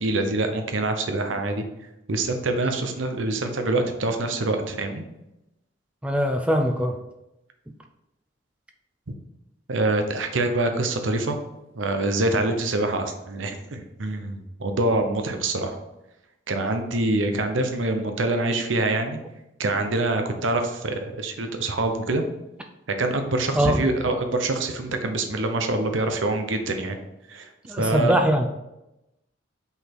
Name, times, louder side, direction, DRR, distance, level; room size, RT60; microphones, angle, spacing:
voice 1, 0.0-1.6 2.1-5.0 9.7-11.4 11.8-15.8 16.5-19.2 19.6-22.2 23.0-27.0 27.3-27.5 27.8-28.1, right 2 dB, 80° right, 6 dB, 0.8 m, -25 dB
voice 2, 6.0-7.0 23.5-24.2 27.7-28.5, equal, 5° right, 4 dB, 0.4 m, -22 dB
5.5 x 4.1 x 4.5 m, 0.92 s
head